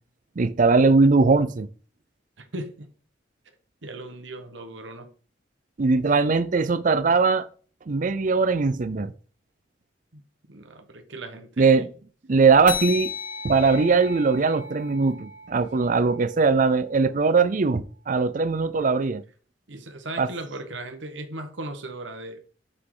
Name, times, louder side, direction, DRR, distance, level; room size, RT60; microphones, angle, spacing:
voice 1, 0.4-1.7 5.8-7.5 7.9-9.1 11.6-11.9 12.3-13.1 13.4-19.2 20.2-20.3, right 4 dB, 45° right, 0.5 m, -20 dB
voice 2, 2.4-2.9 3.8-5.1 10.1-10.2 10.5-11.9 19.7-22.4, right 2 dB, 80° right, 1.4 m, -37 dB
sound 1, 12.7-17.6, left 5 dB, 45° left, 1.5 m, -36 dB
6.0 x 5.9 x 4.9 m
head